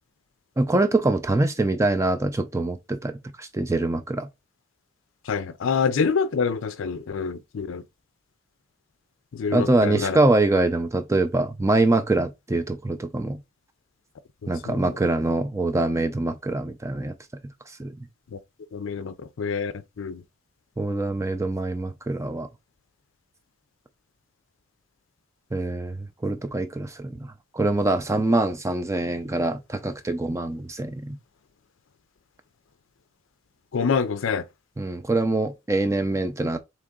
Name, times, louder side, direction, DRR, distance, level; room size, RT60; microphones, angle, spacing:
voice 1, 0.6-4.3 9.5-13.4 14.5-17.1 17.8-18.1 20.8-22.5 25.5-31.2 34.8-36.6, right 2 dB, 15° right, 0.4 m, -24 dB
voice 2, 5.3-7.8 9.3-10.2 14.6-14.8 18.3-18.4 18.7-20.2 33.7-34.4, left 5 dB, 65° left, 0.4 m, -26 dB
3.7 x 3.0 x 3.7 m
head